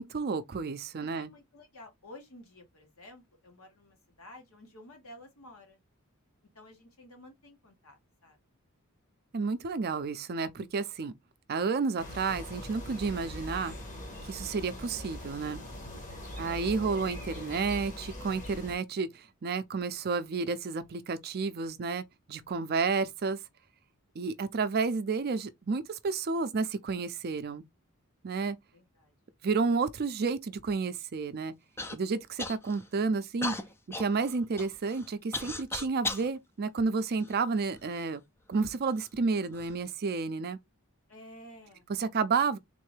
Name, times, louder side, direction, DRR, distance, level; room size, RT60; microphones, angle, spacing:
voice 1, 0.0-1.3 9.3-11.1 11.5-13.8 14.3-15.6 16.4-23.4 24.2-27.6 28.2-28.6 29.4-31.5 31.9-33.5 34.0-38.2 38.5-40.6 41.9-42.6, right 4 dB, 45° right, 0.5 m, -31 dB
voice 2, 1.0-5.8 6.5-8.4 16.3-16.4 28.7-29.1 41.1-41.9, left 1 dB, 70° left, 1.5 m, -52 dB
sound 1, 12.0-18.8, left 1 dB, 35° left, 1.2 m, -42 dB
Human voice / Cough, 31.8-32.0 32.4-32.9 33.4-36.3 37.0-37.8 38.6-38.7 39.4-39.7, left 2 dB, 10° left, 0.4 m, -37 dB
3.6 x 2.6 x 3.2 m
head